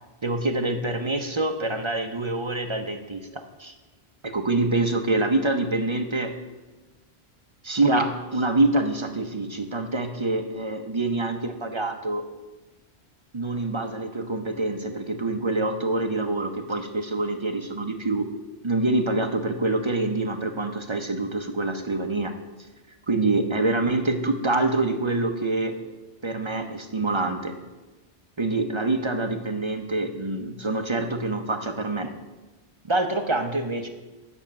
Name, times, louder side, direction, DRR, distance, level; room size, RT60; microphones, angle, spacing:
voice 1, 0.2-3.7 4.2-6.3 7.6-12.2 13.3-18.3 18.6-22.3 23.1-25.8 26.2-27.5 28.4-32.1 32.9-33.9, right 2 dB, 30° right, 6 dB, 0.6 m, -26 dB
9.3 x 6.2 x 7.3 m, 1.2 s
omnidirectional pair, 1.1 m